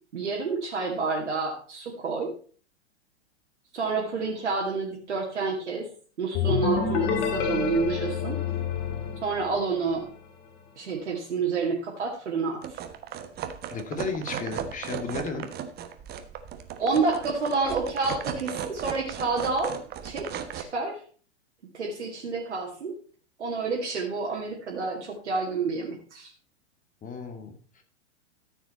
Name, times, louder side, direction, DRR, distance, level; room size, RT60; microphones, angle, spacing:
voice 1, 0.1-2.3 3.7-5.9 6.2-8.4 9.2-10.1 10.8-12.8 16.8-19.7 20.0-20.3 20.5-21.0 21.7-23.0 23.4-26.3, right 4 dB, 75° right, -2 dB, 2.3 m, -29 dB
sound 1, 6.3-10.1, left 7 dB, 50° left, 2.7 m, -28 dB
sound 2, 12.6-20.6, right 8 dB, 25° right, 1.2 m, -36 dB
voice 2, 13.7-15.5 27.0-27.8, left 4 dB, 20° left, 6 dB, 2.2 m, -34 dB
13.5 x 7.2 x 4.2 m, 0.41 s
figure-of-eight pair, 100°, 35 cm